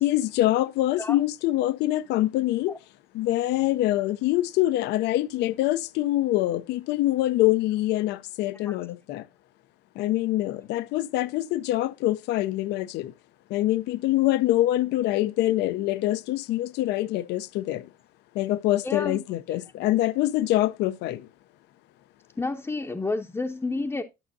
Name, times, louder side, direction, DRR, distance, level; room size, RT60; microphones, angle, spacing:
voice 1, 0.0-2.7 3.1-9.2 10.0-13.1 13.5-17.9 18.4-21.2, left 15 dB, 85° left, 0.6 m, -25 dB
voice 2, 18.8-19.2 22.4-24.0, left 3 dB, 15° left, 0.7 m, -30 dB
11.5 x 6.4 x 2.6 m
cardioid pair, 110°, 17 cm